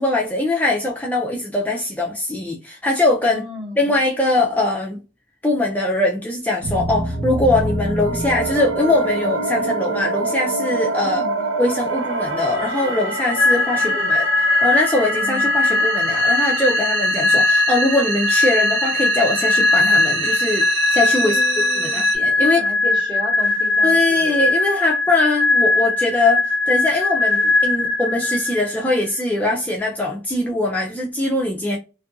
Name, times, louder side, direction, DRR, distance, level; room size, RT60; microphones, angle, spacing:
voice 1, 0.0-3.4 3.8-5.0 5.4-11.3 11.6-21.4 21.8-22.6 23.8-31.8, left 2 dB, 10° left, 0.4 m, -21 dB
voice 2, 3.2-3.9 11.0-11.5 13.8-14.5 15.2-15.5 21.2-22.1 22.4-24.5, left 1 dB, 25° right, 0.8 m, -34 dB
sound 1, 6.6-22.2, right 3 dB, 90° right, 0.7 m, -26 dB
sound 2, 13.4-29.0, left 3 dB, 70° left, 0.5 m, -20 dB
2.6 x 2.4 x 2.5 m
head